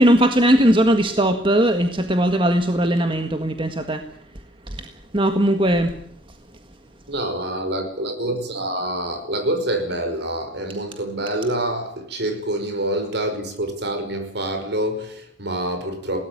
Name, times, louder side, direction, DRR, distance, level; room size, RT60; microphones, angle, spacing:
voice 1, 0.0-4.0 4.8-4.9 5.1-5.9, right 1 dB, 25° right, 6 dB, 1.7 m, -18 dB
voice 2, 7.1-16.3, right 1 dB, 60° right, 7 dB, 5.5 m, -26 dB
21.5 x 18.5 x 8.8 m, 0.68 s
head